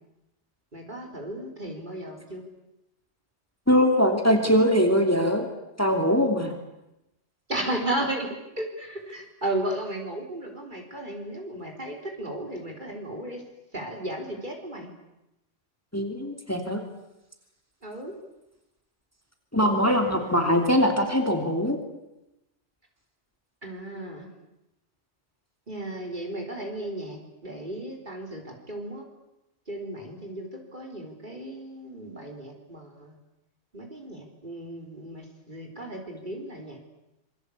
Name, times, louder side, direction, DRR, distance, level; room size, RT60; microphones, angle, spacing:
voice 1, 0.7-2.4 7.5-13.4 13.7-14.9 17.8-18.2 19.6-20.7 23.6-24.3 25.7-29.0 29.7-33.2 33.7-36.8, right 1 dB, 40° right, 3 dB, 4.2 m, -35 dB
voice 2, 3.7-5.5 5.8-6.5 15.9-16.8 19.5-21.8, equal, 10° left, 4 dB, 3.0 m, -22 dB
27.0 x 23.0 x 8.5 m, 0.93 s
omnidirectional pair, 1.2 m